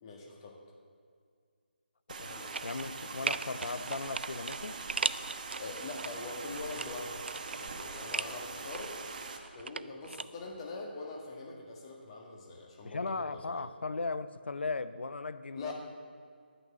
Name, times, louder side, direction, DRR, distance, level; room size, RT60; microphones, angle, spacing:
voice 1, 0.0-0.6 2.3-2.5 5.6-7.2 7.6-9.0 9.5-13.6 15.5-15.7, left 3 dB, 30° left, -1 dB, 1.8 m, -43 dB
sound 1, 2.1-9.4, right 4 dB, 45° right, 1.1 m, -43 dB
sound 2, 2.5-3.0 3.3-6.1 6.5-8.3 8.7-10.2 10.5-10.6, right 4 dB, 70° right, 0.3 m, -37 dB
voice 2, 2.6-4.8 12.8-15.7, left 3 dB, 75° left, 13 dB, 0.5 m, -37 dB
11.0 x 6.1 x 7.4 m, 2.1 s
figure-of-eight pair, 155°, 6 cm